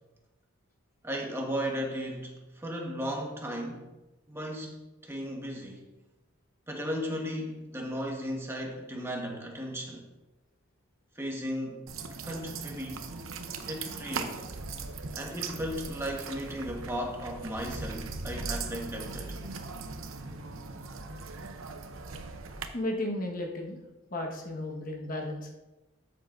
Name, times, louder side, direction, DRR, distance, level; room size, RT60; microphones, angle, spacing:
voice 1, 1.0-3.9 4.3-5.8 6.7-10.1 11.1-13.1 13.7-14.4 15.1-19.4, equal, 10° right, 0 dB, 1.4 m, -36 dB
sound 1, 11.9-22.7, right 4 dB, 85° right, 0.8 m, -39 dB
voice 2, 22.7-23.8 24.1-25.5, left 1 dB, 45° left, 0 dB, 1.5 m, -34 dB
13.0 x 7.5 x 2.6 m, 1.0 s
head